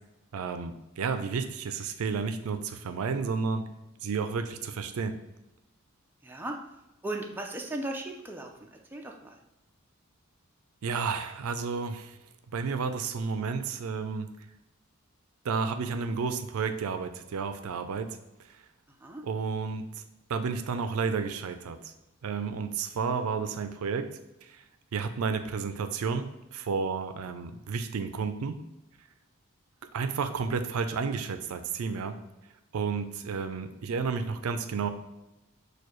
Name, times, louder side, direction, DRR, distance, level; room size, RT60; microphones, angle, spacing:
voice 1, 0.3-3.7 4.0-5.2 10.8-12.2 12.5-14.5 15.4-18.6 19.2-20.0 20.3-21.9 22.2-24.6 24.9-28.6 29.9-32.2 32.7-34.9, right 5 dB, 80° right, 9 dB, 0.4 m, -32 dB
voice 2, 6.2-6.6 7.0-9.4 18.9-19.2, right 2 dB, 10° right, 1 dB, 0.4 m, -37 dB
6.5 x 2.3 x 3.0 m, 0.95 s
head